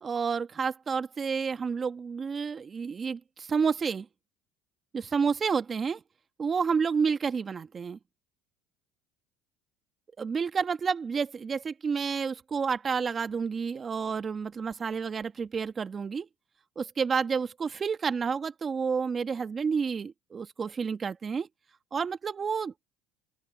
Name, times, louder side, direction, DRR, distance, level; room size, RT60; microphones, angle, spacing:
voice 1, 0.0-4.1 4.9-6.0 6.4-8.0 10.2-16.3 16.8-21.5 21.9-22.7, right 5 dB, 30° right, 1.4 m, -30 dB
open air
supercardioid pair, 100°, 0 cm